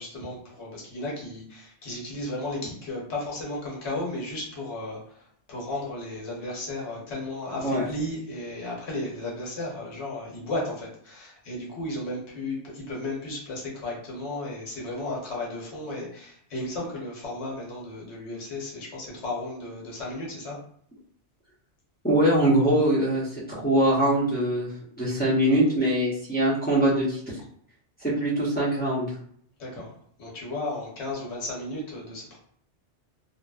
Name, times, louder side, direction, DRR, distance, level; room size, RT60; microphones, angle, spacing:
voice 1, 0.0-20.6 29.6-29.9 30.2-32.4, left 2 dB, 70° left, -3 dB, 1.2 m, -34 dB
voice 2, 22.0-27.2 28.0-29.1, right 1 dB, 10° left, -8 dB, 0.7 m, -23 dB
2.9 x 2.1 x 2.3 m, 0.63 s
omnidirectional pair, 1.2 m